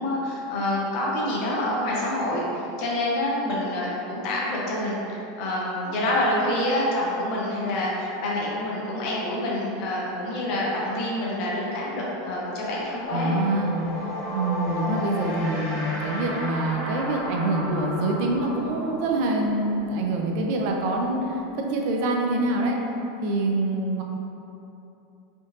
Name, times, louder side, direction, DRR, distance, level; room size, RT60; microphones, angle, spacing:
voice 1, 0.0-13.4, left 1 dB, 55° left, -5 dB, 0.7 m, -27 dB
sound 1, 11.1-11.3 11.6-22.1, equal, 80° left, 1.5 m, -35 dB
voice 2, 13.1-22.8 23.2-24.0, right 2 dB, 60° right, 1 dB, 0.4 m, -25 dB
3.5 x 2.6 x 2.5 m, 2.8 s
hypercardioid pair, 100°, 0 cm